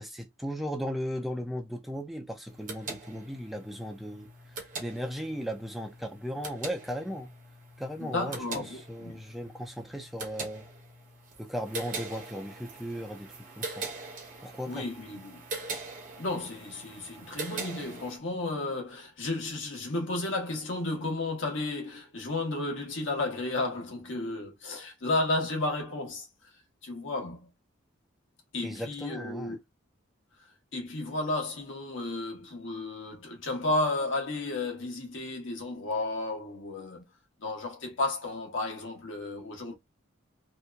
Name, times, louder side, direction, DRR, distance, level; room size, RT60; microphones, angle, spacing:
voice 1, 0.0-4.3 4.8-7.3 7.8-10.7 11.4-13.9 14.4-14.9 28.6-29.6, equal, ahead, 0.3 m, -36 dB
sound 1, 2.5-18.2, right 3 dB, 40° right, 0.7 m, -42 dB
voice 2, 8.0-9.2 14.7-15.4 16.2-26.3 26.8-27.5 28.5-29.6 30.7-37.1 37.4-39.8, left 2 dB, 70° left, 1.0 m, -33 dB
2.8 x 2.2 x 2.3 m
head